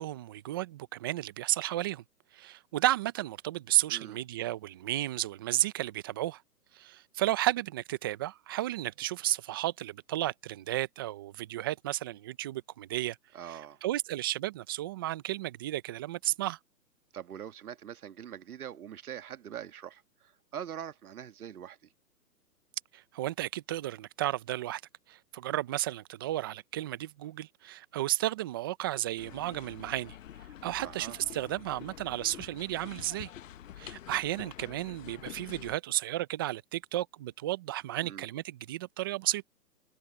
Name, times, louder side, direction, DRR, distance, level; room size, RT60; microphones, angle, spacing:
voice 1, 0.0-2.0 2.3-6.4 6.7-13.2 13.5-16.6 22.9-24.8 25.1-30.2 30.6-33.3 33.8-39.4, right 15 dB, 15° right, 0.6 m, -33 dB
voice 2, 3.9-4.2 13.3-13.8 17.1-21.8 30.8-31.2 38.0-38.2, right 9 dB, 60° right, 1.7 m, -43 dB
sound 1, 29.2-35.8, left 11 dB, 50° left, 1.2 m, -47 dB
hypercardioid pair, 140°, 49 cm